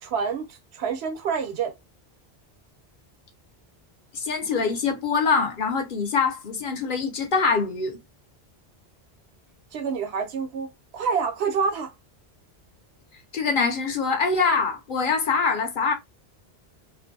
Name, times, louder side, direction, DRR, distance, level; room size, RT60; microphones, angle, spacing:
voice 1, 0.0-1.7 9.7-11.9, right 6 dB, 90° right, 0.9 m, -27 dB
voice 2, 4.1-8.0 13.3-15.9, left 4 dB, 55° left, 0.8 m, -24 dB
2.5 x 2.5 x 2.6 m
omnidirectional pair, 1.0 m